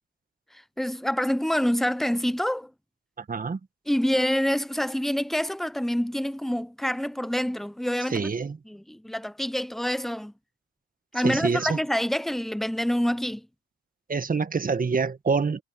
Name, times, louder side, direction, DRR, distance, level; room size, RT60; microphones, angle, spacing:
voice 1, 0.5-2.7 3.9-8.3 8.7-10.3 11.1-13.5, equal, ahead, 0.8 m, -27 dB
voice 2, 3.2-3.6 8.1-8.6 11.2-11.8 14.1-15.6, right 5 dB, 30° right, 1.6 m, -26 dB
cardioid pair, 90°, 30 cm